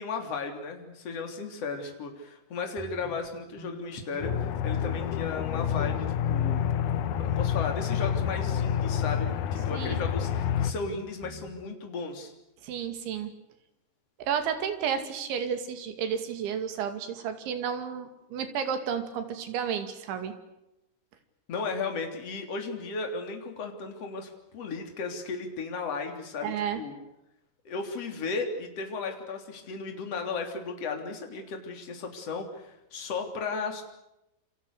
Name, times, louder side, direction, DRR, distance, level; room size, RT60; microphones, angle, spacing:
voice 1, 0.0-6.7 7.1-12.3 21.5-27.0 27.7-33.8, left 4 dB, 35° left, 4 dB, 3.9 m, -35 dB
sound 1, 2.8-4.6 4.9-5.5 5.8-7.6 7.9-8.2 8.5-11.5, left 2 dB, 5° left, 6.0 m, -46 dB
Aircraft, 4.2-10.7, left 9 dB, 80° left, 1.8 m, -28 dB
voice 2, 9.7-10.0 12.6-13.3 14.2-20.3 26.4-26.8, right 7 dB, 85° right, 8 dB, 4.8 m, -32 dB
28.0 x 26.5 x 6.8 m, 0.90 s
omnidirectional pair, 5.2 m